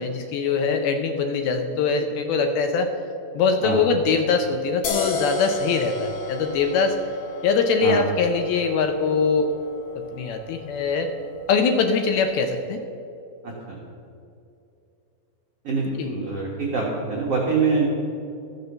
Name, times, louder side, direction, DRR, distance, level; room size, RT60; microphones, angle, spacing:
voice 1, 0.0-2.9 3.4-7.0 7.4-9.5 10.1-11.1 11.5-12.8 16.0-16.1, left 5 dB, 80° left, 6 dB, 2.3 m, -22 dB
sound 1, 4.8-12.1, left 4 dB, 65° left, 3.6 m, -33 dB
voice 2, 13.4-13.8 15.6-17.9, right 4 dB, 75° right, -3 dB, 1.4 m, -25 dB
14.0 x 6.7 x 6.6 m, 2.6 s
omnidirectional pair, 4.8 m